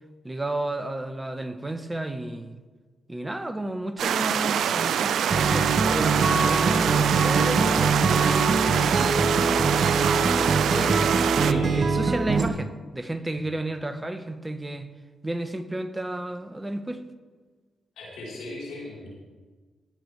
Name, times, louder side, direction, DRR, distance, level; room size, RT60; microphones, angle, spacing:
voice 1, 0.2-2.6 3.1-9.9 10.4-11.1 11.5-14.9 15.2-17.0, right 1 dB, 20° right, 9 dB, 1.2 m, -32 dB
sound 1, 4.0-11.5, right 8 dB, 75° right, 0.4 m, -25 dB
Acoustic guitar, 5.3-12.5, right 4 dB, 50° right, 1.0 m, -23 dB
voice 2, 10.0-10.3 11.4-11.9 13.3-13.4 18.0-19.1, left 2 dB, 80° left, -6 dB, 4.4 m, -39 dB
19.5 x 8.2 x 3.5 m, 1.4 s
hypercardioid pair, 45°, 0 cm